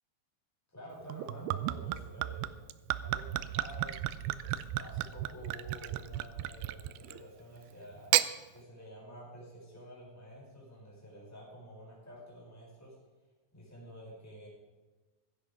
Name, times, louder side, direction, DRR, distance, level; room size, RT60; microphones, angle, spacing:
voice 1, 0.7-2.5 3.0-8.1 8.5-12.9 13.5-14.5, equal, 5° left, -5 dB, 5.1 m, -50 dB
Gurgling / Chink clink / Liquid, 1.1-7.3 7.9-8.3, right 14 dB, 85° right, 2.5 m, -34 dB
15.5 x 11.5 x 5.2 m, 1.2 s
omnidirectional pair, 4.4 m